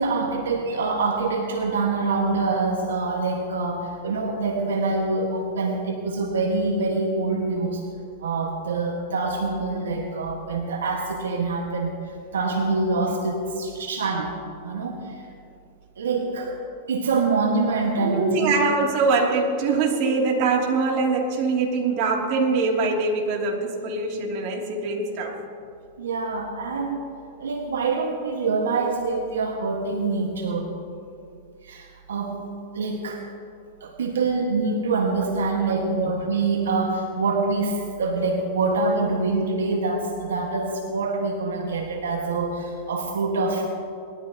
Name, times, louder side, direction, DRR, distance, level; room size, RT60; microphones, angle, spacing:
voice 1, 0.0-7.8 8.2-14.4 14.6-15.2 16.0-16.5 16.9-18.5 26.0-27.0 27.4-30.7 31.6-32.4 32.7-33.3 33.8-43.7, right 3 dB, 90° right, 1 dB, 1.6 m, -25 dB
voice 2, 18.0-25.4, right 4 dB, 50° right, 0 dB, 2.8 m, -23 dB
21.0 x 13.5 x 3.0 m, 2.4 s
hypercardioid pair, 120°, 0 cm